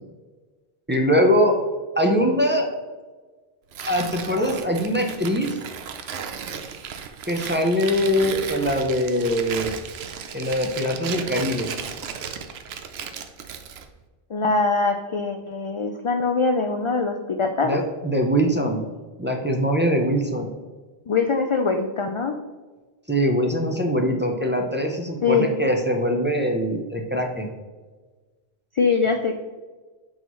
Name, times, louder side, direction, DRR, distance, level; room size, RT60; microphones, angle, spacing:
voice 1, 0.9-1.6 2.0-2.7 3.8-5.6 7.3-9.8 10.3-11.7 17.6-18.8 19.2-20.5 23.1-27.5, equal, 10° right, 1 dB, 0.6 m, -22 dB
Tearing, 3.7-13.9, right 7 dB, 75° right, 0.9 m, -35 dB
voice 2, 14.3-17.7 21.1-22.3 25.2-25.5 28.7-29.3, left 4 dB, 50° left, 5 dB, 0.3 m, -22 dB
6.3 x 5.4 x 3.1 m, 1.3 s
omnidirectional pair, 1.1 m